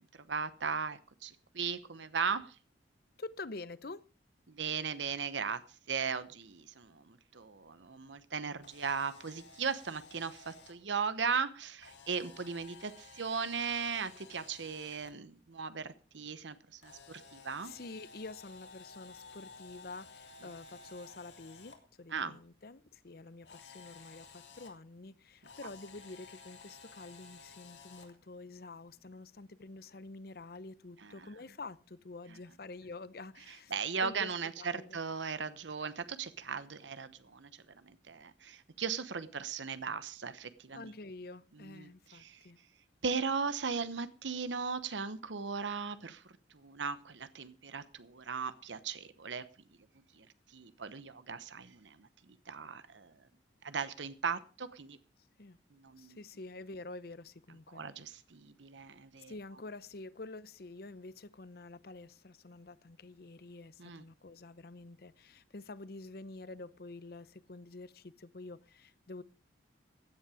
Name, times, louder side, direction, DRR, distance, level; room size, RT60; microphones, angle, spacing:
voice 1, 0.3-2.6 4.5-5.6 5.9-17.7 22.1-22.4 31.0-31.3 33.5-37.5 37.8-40.9 41.5-42.5 43.0-49.4 50.1-53.1 53.6-55.0 55.7-56.2 57.7-59.3 63.8-64.0, right 5 dB, 85° right, 0.9 m, -38 dB
voice 2, 3.2-4.0 17.6-33.8 34.0-34.3 34.6-35.0 40.7-42.6 55.4-55.6 56.0-57.8 59.3-69.2, left 3 dB, 55° left, 0.7 m, -48 dB
Camera, 8.5-10.7 11.8-15.1 16.8-21.8 23.4-24.7 25.4-28.1, left 4 dB, 75° left, 3.2 m, -54 dB
16.0 x 10.5 x 4.9 m
head